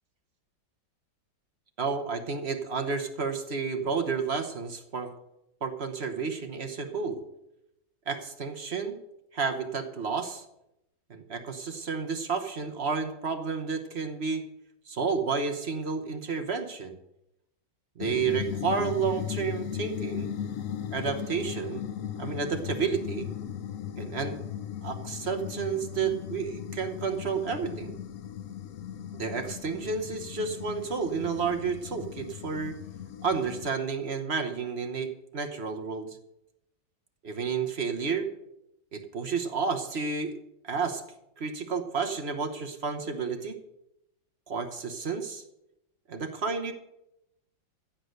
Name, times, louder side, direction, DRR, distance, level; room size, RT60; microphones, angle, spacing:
voice 1, 1.8-5.1 5.6-7.2 8.1-9.0 9.3-10.4 11.1-14.4 14.9-17.0 18.0-20.3 20.9-21.9 22.2-23.3 24.0-24.4 24.8-27.9 29.1-32.8 33.2-36.2 37.2-38.3 38.9-40.3 40.6-41.0 41.4-43.6 44.5-45.4 46.1-46.7, right 5 dB, 45° right, 7 dB, 1.0 m, -31 dB
sound 1, 18.0-33.7, left 9 dB, 85° left, 0.7 m, -37 dB
14.5 x 8.1 x 6.5 m, 0.86 s
omnidirectional pair, 2.1 m